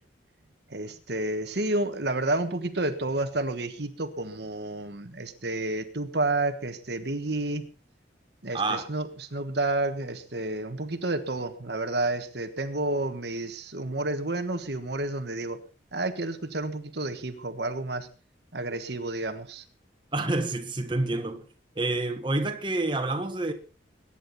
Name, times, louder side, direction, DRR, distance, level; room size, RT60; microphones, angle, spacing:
voice 1, 0.7-7.6 8.4-15.6 15.9-18.1 18.5-19.6, right 2 dB, 60° right, 1.4 m, -30 dB
voice 2, 8.5-8.9 20.1-21.4 21.7-23.5, right 2 dB, 25° right, 1.5 m, -28 dB
22.0 x 10.0 x 4.2 m
head